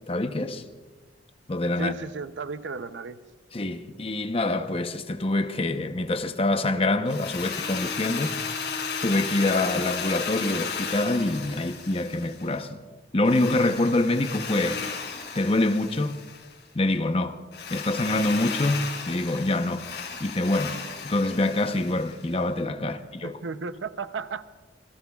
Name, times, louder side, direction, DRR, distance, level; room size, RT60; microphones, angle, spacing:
voice 1, 0.1-0.6 1.5-1.9 3.5-8.4 9.0-12.8 13.1-14.8 15.3-16.2 16.7-17.4 17.7-19.9 20.2-23.4, left 2 dB, 30° left, 0.8 m, -25 dB
voice 2, 1.8-3.2 23.2-24.4, right 4 dB, 85° right, 0.7 m, -34 dB
Drill, 7.1-12.6 13.2-16.5 17.5-22.3, left 5 dB, 70° left, 4.9 m, -34 dB
28.0 x 21.5 x 2.4 m
head